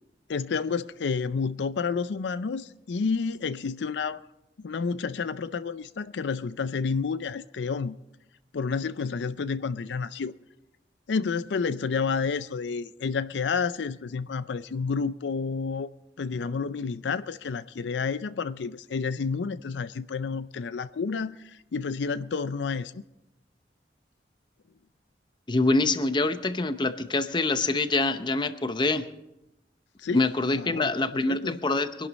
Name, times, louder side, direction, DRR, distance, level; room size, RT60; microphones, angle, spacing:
voice 1, 0.3-4.2 4.6-8.0 8.5-10.3 11.1-15.9 16.2-23.0 30.0-30.3 30.5-31.5, left 5 dB, 85° left, 0.5 m, -30 dB
voice 2, 25.5-29.1 30.1-32.1, left 2 dB, 25° left, 0.7 m, -25 dB
24.0 x 11.5 x 4.1 m
head